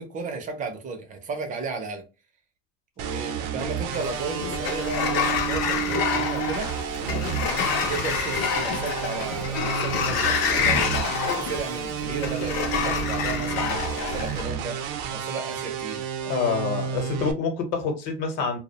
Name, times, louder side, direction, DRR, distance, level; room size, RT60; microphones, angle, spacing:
voice 1, 0.0-2.0 3.0-6.7 7.8-16.1, right 4 dB, 25° right, 0.4 m, -34 dB
sound 1, 3.0-17.3, right 9 dB, 80° right, 0.5 m, -31 dB
Sliding door, 3.9-14.4, left 6 dB, 50° left, 0.5 m, -27 dB
voice 2, 16.2-18.6, left 5 dB, 65° left, 0.8 m, -27 dB
2.3 x 2.0 x 2.8 m
cardioid pair, 160°, 32 cm